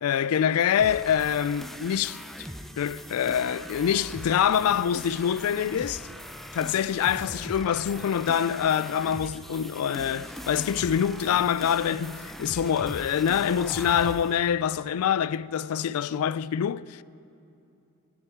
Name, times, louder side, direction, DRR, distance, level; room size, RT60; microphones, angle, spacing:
voice 1, 0.0-2.2 2.8-6.1 6.5-17.0, left 8 dB, 80° left, 0.3 m, -25 dB
sound 1, 0.8-14.3, equal, ahead, 0.5 m, -40 dB
21.5 x 9.3 x 4.5 m
head